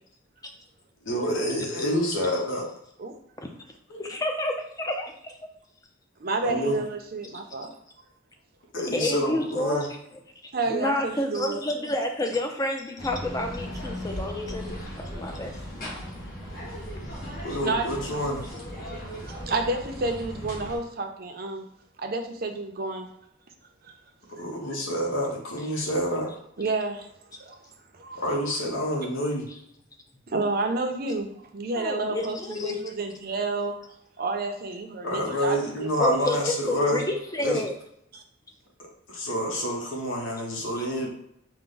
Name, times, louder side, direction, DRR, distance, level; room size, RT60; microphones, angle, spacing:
voice 1, 1.0-2.7 6.4-6.8 8.7-9.9 17.4-18.5 24.4-26.4 28.1-29.5 35.0-37.0 37.4-37.6 39.1-41.1, equal, 80° left, 0 dB, 1.0 m, -27 dB
voice 2, 4.0-4.5 4.8-5.4 8.9-9.8 10.4-16.1 31.8-33.0 36.0-37.7 40.8-40.9, left 1 dB, 20° left, 3 dB, 0.5 m, -30 dB
voice 3, 6.2-7.7 10.5-11.6 17.6-17.9 19.0-21.6 22.0-23.1 23.8-23.9 26.6-27.1 27.4-27.6 27.9-28.2 30.3-33.7 34.2-35.9 38.1-38.2, right 3 dB, 50° right, 4 dB, 0.6 m, -30 dB
sound 1, 13.0-20.8, equal, 45° left, 1.3 m, -37 dB
4.7 x 2.2 x 3.9 m, 0.75 s
head